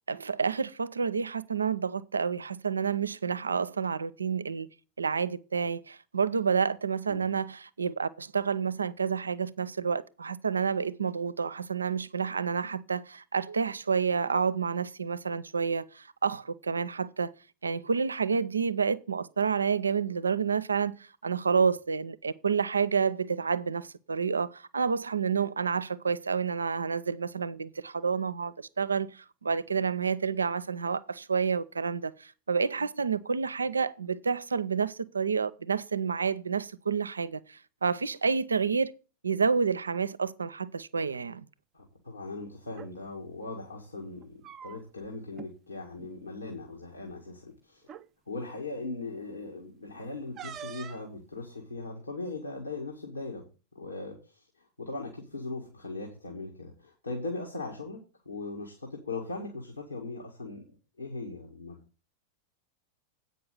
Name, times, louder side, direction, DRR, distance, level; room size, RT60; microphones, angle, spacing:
voice 1, 0.1-4.7 5.0-17.3 17.6-21.0 21.2-38.9 39.2-41.4, right 5 dB, 75° right, 0.5 m, -29 dB
voice 2, 41.7-47.8 48.3-53.5 53.7-58.0 58.3-61.8, left 3 dB, 80° left, 2.0 m, -39 dB
sound 1, 42.6-42.9 44.2-45.1 45.3-45.5 45.9-46.1 47.1-47.2 47.8-48.1 50.4-51.1, right 8 dB, 30° right, 0.6 m, -44 dB
8.6 x 5.4 x 7.4 m
figure-of-eight pair, 90°, 0 cm